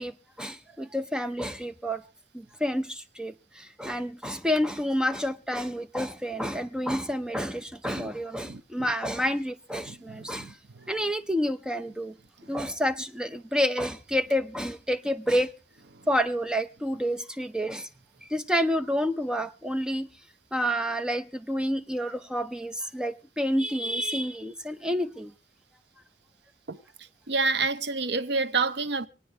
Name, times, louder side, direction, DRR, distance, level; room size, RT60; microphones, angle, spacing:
voice 1, 0.0-2.0 2.3-10.5 10.9-12.1 12.5-15.5 16.1-17.9 18.3-20.1 20.5-25.3, equal, 5° right, 0.6 m, -29 dB
voice 2, 8.4-8.9 9.9-10.9 12.4-12.5 15.9-16.1 26.7-26.8 27.3-29.1, right 4 dB, 60° right, 0.8 m, -29 dB
26.5 x 9.2 x 3.1 m
head